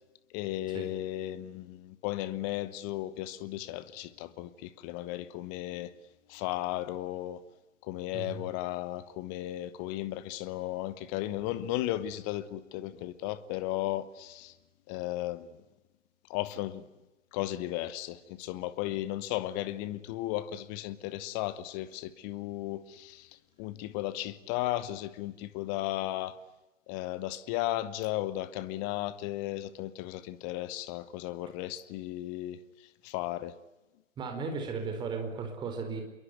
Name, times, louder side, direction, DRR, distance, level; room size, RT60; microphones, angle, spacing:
voice 1, 0.3-5.9 6.3-7.4 7.8-14.5 14.9-15.6 16.3-16.8 17.3-23.3 23.6-26.4 26.9-32.6 33.0-33.6, left 15 dB, 15° left, 0.9 m, -35 dB
voice 2, 34.2-36.0, right 4 dB, 10° right, 4.5 m, -35 dB
27.0 x 23.0 x 9.5 m
figure-of-eight pair, 135°, 38 cm